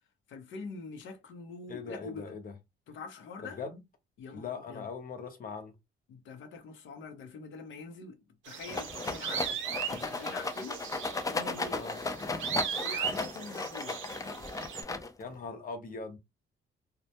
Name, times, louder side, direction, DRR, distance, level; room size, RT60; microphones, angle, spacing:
voice 1, 0.3-2.3 2.9-3.6 4.2-4.9 6.1-8.2 8.4-10.8 11.3-11.8 12.8-14.0, left 4 dB, 75° left, 0.7 m, -45 dB
voice 2, 1.7-2.5 3.4-3.8 4.3-5.7 11.7-12.0 15.2-16.2, left 4 dB, 45° left, 0.8 m, -40 dB
sound 1, 8.4-14.8, right 8 dB, 80° right, 0.5 m, -38 dB
Rattle, 8.7-15.3, left 3 dB, 15° left, 0.4 m, -36 dB
2.2 x 2.1 x 2.8 m
cardioid pair, 90°, 20 cm